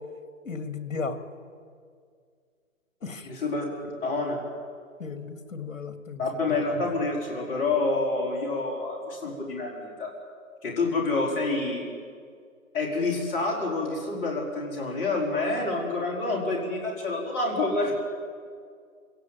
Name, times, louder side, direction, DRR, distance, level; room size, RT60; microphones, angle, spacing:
voice 1, 0.4-1.2 3.0-3.3 5.0-6.2, left 4 dB, 70° left, 9 dB, 2.5 m, -35 dB
voice 2, 3.2-3.7 4.0-4.4 6.2-10.1 10.6-11.8 12.7-17.9, left 3 dB, 20° left, -2 dB, 4.6 m, -28 dB
26.0 x 17.0 x 9.2 m, 2.1 s
hypercardioid pair, 150°, 41 cm